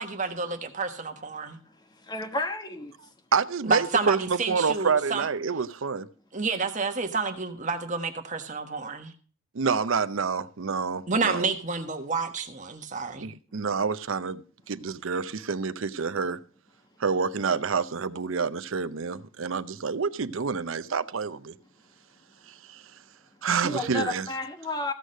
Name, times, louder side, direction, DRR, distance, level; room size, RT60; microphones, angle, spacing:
voice 1, 0.0-1.6 3.7-5.2 6.3-9.1 11.1-13.3, right 4 dB, 35° right, 1.3 m, -29 dB
voice 2, 1.9-2.9 23.5-24.9, left 2 dB, 20° left, 1.2 m, -32 dB
voice 3, 3.3-6.1 9.5-11.5 13.2-16.4 17.0-21.6 22.5-22.9 23.4-24.3, right 5 dB, 75° right, 0.6 m, -28 dB
15.0 x 6.4 x 6.4 m
head